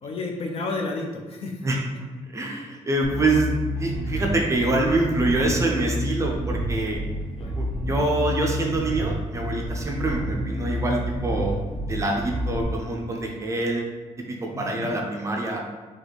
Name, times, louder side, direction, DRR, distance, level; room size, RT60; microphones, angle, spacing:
voice 1, 0.0-1.7 7.4-7.6 14.5-14.9, left 3 dB, 45° left, 1 dB, 0.5 m, -31 dB
voice 2, 2.3-3.5 3.8-7.0 7.6-11.6 11.9-13.8 14.2-15.6, right 2 dB, 20° right, 0 dB, 0.5 m, -25 dB
Bass guitar, 3.0-12.6, equal, 5° left, 0.8 m, -29 dB
3.1 x 2.9 x 4.1 m, 1.4 s
wide cardioid pair, 175°, 13 cm